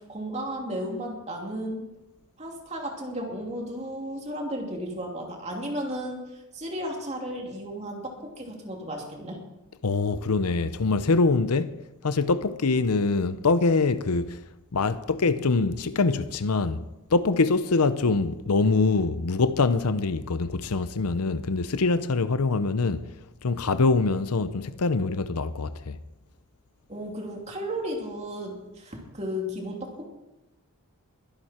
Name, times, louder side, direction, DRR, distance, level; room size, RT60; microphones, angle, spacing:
voice 1, 0.0-1.8 2.4-9.4 26.9-30.1, equal, 30° right, 2.8 m, -34 dB
voice 2, 9.8-11.8 12.0-14.4 14.7-16.8 17.1-23.1 23.4-26.0, left 3 dB, 90° left, 0.7 m, -24 dB
22.0 x 11.0 x 4.4 m
head